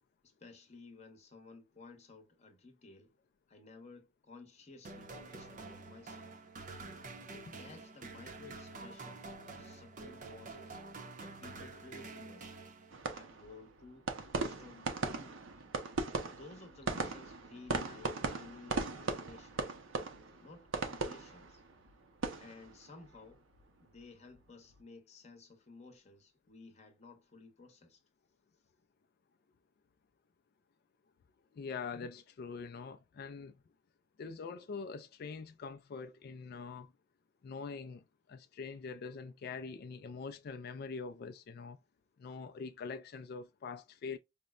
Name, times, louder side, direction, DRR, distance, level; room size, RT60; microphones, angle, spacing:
voice 1, 0.2-3.2 3.5-6.3 7.2-10.8 11.2-12.6 13.1-15.4 16.4-19.8 20.4-21.6 22.4-23.4 23.8-28.0, left 3 dB, 35° left, 0.8 m, -55 dB
sound 1, 4.8-13.2, right 3 dB, 40° right, 0.6 m, -48 dB
sound 2, 12.9-24.0 24.3-24.8, right 3 dB, 75° right, 0.7 m, -39 dB
voice 2, 31.5-33.6 34.2-36.9 37.4-41.8 42.2-44.2, left 5 dB, 50° left, 0.3 m, -44 dB
5.1 x 2.1 x 2.3 m
head